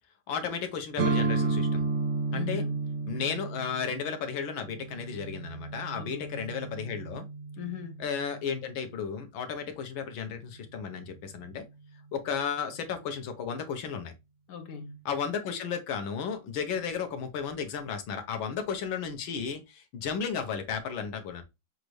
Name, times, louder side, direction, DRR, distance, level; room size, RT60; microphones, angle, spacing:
voice 1, 0.3-1.9 2.3-2.6 3.1-7.3 8.0-11.7 12.1-14.1 15.1-21.4, left 6 dB, 85° left, 1.7 m, -34 dB
sound 1, 1.0-8.7, right 3 dB, 65° right, 1.4 m, -32 dB
voice 2, 2.3-2.9 5.9-6.4 7.6-8.0 14.5-15.0, left 8 dB, 65° left, 1.3 m, -39 dB
6.6 x 2.5 x 3.1 m
omnidirectional pair, 2.1 m